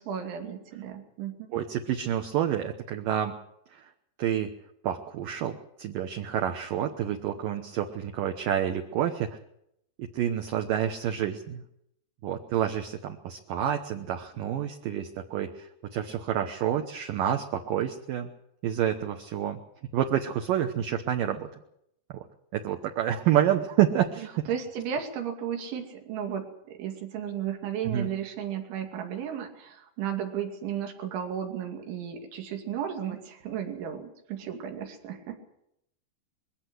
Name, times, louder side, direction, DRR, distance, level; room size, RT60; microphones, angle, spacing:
voice 1, 0.0-1.6 24.5-35.4, right 8 dB, 90° right, 4 dB, 5.0 m, -34 dB
voice 2, 1.5-3.4 3.7-3.8 4.2-4.5 4.8-9.4 10.0-11.6 12.2-18.3 18.6-19.6 19.9-21.5 22.1-22.2 22.5-24.5 27.9-28.1, right 10 dB, 70° right, 5 dB, 2.2 m, -28 dB
22.0 x 16.5 x 8.0 m, 0.75 s
omnidirectional pair, 5.2 m